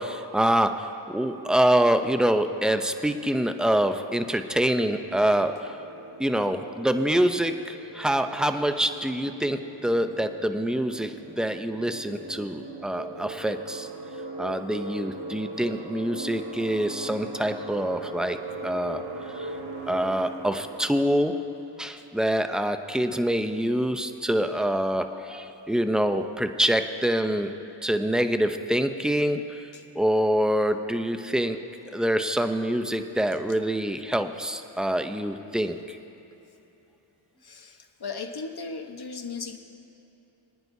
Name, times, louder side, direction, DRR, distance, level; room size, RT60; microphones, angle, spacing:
voice 1, 0.0-5.7 6.2-13.9 14.4-19.0 19.3-19.5 19.9-21.3 21.8-27.5 27.8-29.6 30.0-31.6 31.9-36.0, right 1 dB, ahead, 8 dB, 0.6 m, -25 dB
sound 1, 4.7-21.2, right 2 dB, 70° right, 1.5 m, -40 dB
voice 2, 37.4-39.6, left 4 dB, 50° left, 5 dB, 1.1 m, -37 dB
26.0 x 9.6 x 2.7 m, 2.9 s
cardioid pair, 55°, 49 cm